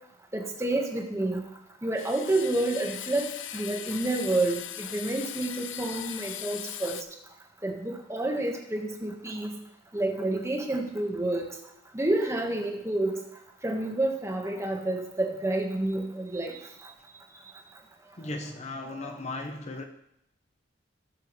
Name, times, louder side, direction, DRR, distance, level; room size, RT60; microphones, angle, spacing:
voice 1, 0.3-1.4 1.8-7.0 7.6-9.6 9.9-11.5 11.9-13.2 13.6-16.6 19.0-19.1, right 2 dB, 15° right, 1.4 m, -29 dB
sound 1, 2.0-7.0, left 12 dB, 85° left, 0.5 m, -39 dB
voice 2, 18.2-19.8, left 2 dB, 35° left, 0.7 m, -36 dB
18.0 x 6.9 x 3.2 m
head